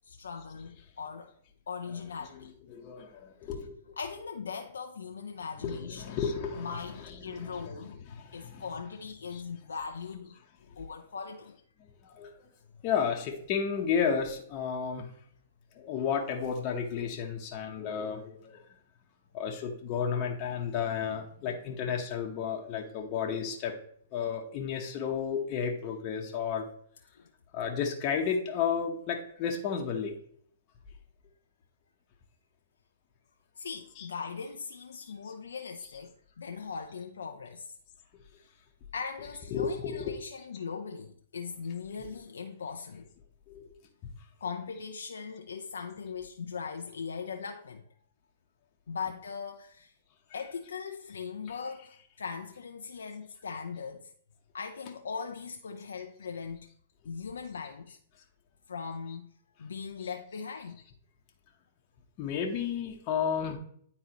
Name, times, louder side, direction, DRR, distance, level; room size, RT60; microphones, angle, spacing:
voice 1, 0.0-1.3 1.7-2.5 4.0-6.2 6.6-8.0 8.3-10.4 10.8-11.6 33.6-37.7 38.9-43.1 44.4-47.8 48.9-49.9 50.3-54.1 54.5-56.7 57.1-58.0 58.7-59.3 59.6-60.8, left 5 dB, 85° left, 0.5 m, -39 dB
voice 2, 1.8-3.8 5.6-8.9 9.3-9.4 12.0-12.3 12.8-15.1 15.8-18.6 19.3-23.7 24.1-26.7 27.5-30.1 33.9-34.1 35.2-35.3 39.2-40.2 42.0-42.1 43.5-43.7 50.3-50.5 51.5-51.8 60.0-60.1 62.2-63.6, left 7 dB, 40° left, 0.9 m, -33 dB
9.4 x 3.9 x 2.9 m
hypercardioid pair, 125°, 0 cm